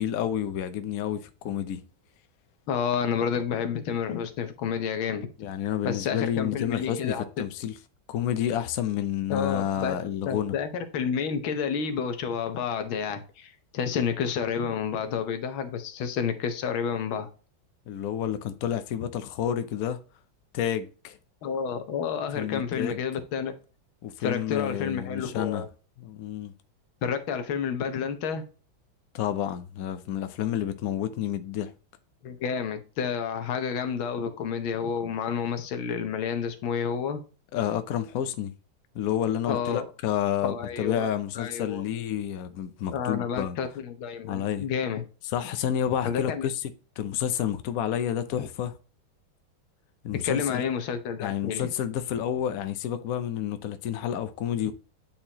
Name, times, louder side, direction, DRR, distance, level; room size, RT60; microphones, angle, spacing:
voice 1, 0.0-1.8 5.4-7.7 8.1-10.5 17.9-20.0 20.5-21.2 22.3-23.0 24.0-25.6 26.0-26.5 29.1-31.7 37.5-38.5 38.9-43.6 44.2-44.7 45.3-46.6 47.0-48.7 50.0-50.6 51.2-54.7, left 10 dB, 65° left, 0.9 m, -29 dB
voice 2, 2.7-5.3 5.8-7.2 9.3-10.0 10.3-17.3 21.4-23.5 24.2-25.7 27.0-28.4 32.2-37.2 39.5-39.9 40.4-41.1 41.4-41.8 42.9-45.0 46.0-46.5 50.2-51.7, left 7 dB, 85° left, 1.8 m, -30 dB
8.7 x 4.4 x 2.8 m
omnidirectional pair, 2.2 m